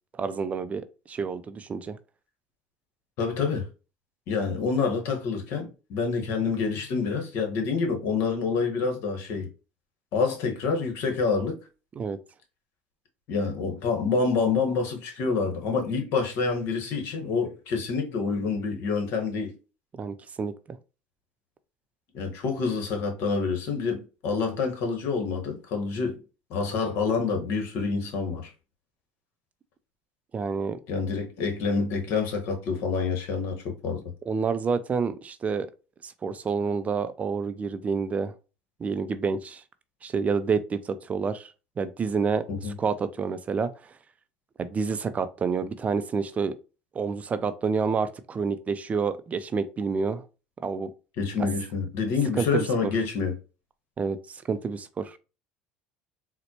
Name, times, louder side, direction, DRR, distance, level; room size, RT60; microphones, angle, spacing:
voice 1, 0.2-2.0 12.0-12.2 20.0-20.5 30.3-30.8 34.3-35.7 36.0-38.3 38.8-39.6 40.0-41.5 41.8-42.4 42.8-43.7 44.6-46.5 46.9-50.2 50.6-50.9 52.4-52.9 54.0-55.2, right 5 dB, 30° right, 0.4 m, -28 dB
voice 2, 3.2-3.7 4.3-9.5 10.1-11.6 13.3-19.5 22.1-26.2 26.5-28.5 30.9-34.0 42.5-42.7 51.2-53.3, left 4 dB, 65° left, 1.1 m, -27 dB
4.0 x 2.1 x 2.8 m
hypercardioid pair, 80°, 5 cm